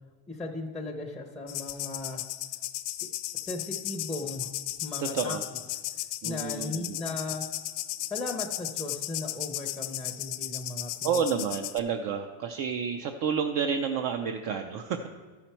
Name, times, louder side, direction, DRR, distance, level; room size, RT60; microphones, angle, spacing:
voice 1, 0.3-2.3 3.5-4.5 4.8-5.4 6.2-7.4 8.1-11.2, left 2 dB, ahead, 2 dB, 0.5 m, -37 dB
sound 1, 1.5-11.8, left 16 dB, 70° left, 0.7 m, -35 dB
voice 2, 5.0-5.4 6.2-7.0 11.0-15.1, right 6 dB, 55° right, 6 dB, 0.6 m, -30 dB
13.0 x 5.7 x 4.4 m, 1.5 s
cardioid pair, 145°, 41 cm